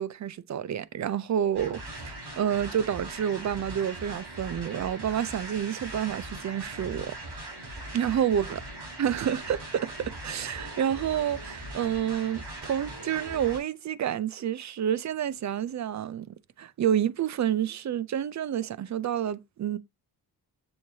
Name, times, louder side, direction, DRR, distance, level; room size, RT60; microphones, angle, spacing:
voice 1, 0.0-7.2 7.9-8.6 9.0-19.8, right 9 dB, 45° right, 0.5 m, -29 dB
sound 1, 1.5-13.6, right 1 dB, 75° right, 3.9 m, -40 dB
7.4 x 6.5 x 2.8 m
wide cardioid pair, 150°, 40 cm